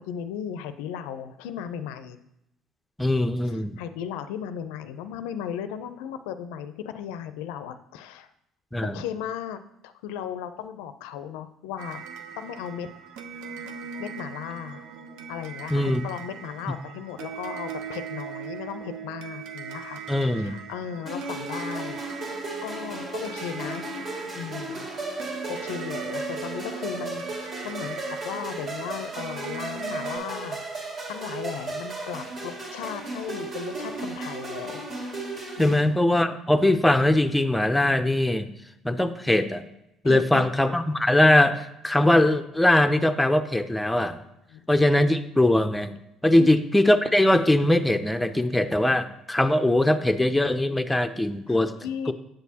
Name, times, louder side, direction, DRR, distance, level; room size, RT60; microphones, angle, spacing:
voice 1, 0.0-2.2 3.4-8.3 8.8-12.0 12.4-12.9 14.0-14.9 15.3-22.0 22.6-23.9 24.3-25.2 25.5-28.0 28.2-30.7 31.1-34.8 35.6-35.8 40.0-40.7 44.5-44.6 46.3-46.6 51.5-52.1, left 9 dB, 85° left, 11 dB, 0.4 m, -36 dB
voice 2, 3.0-3.7 8.7-9.0 15.7-16.0 20.1-20.6 35.6-38.5 38.8-39.6 40.0-44.2 44.7-46.0 46.2-51.7 52.1-52.2, left 1 dB, 5° left, 8 dB, 0.5 m, -21 dB
sound 1, 11.8-30.2, right 6 dB, 80° right, 0.7 m, -39 dB
sound 2, 21.1-35.8, right 2 dB, 45° right, 2.0 m, -35 dB
7.8 x 6.1 x 2.8 m, 0.85 s
supercardioid pair, 75°, 0 cm